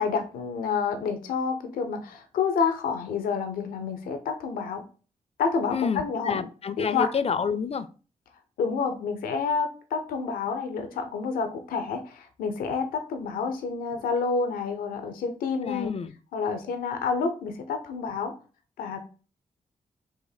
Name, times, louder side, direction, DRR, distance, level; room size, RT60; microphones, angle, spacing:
voice 1, 0.0-4.8 5.4-6.4 6.8-7.1 8.6-15.9 16.3-18.3 18.8-19.0, left 5 dB, 90° left, 7 dB, 0.6 m, -29 dB
voice 2, 5.7-7.9 15.6-16.1, left 6 dB, 45° left, 14 dB, 0.5 m, -29 dB
4.2 x 2.6 x 3.9 m, 0.36 s
supercardioid pair, 40°, 14 cm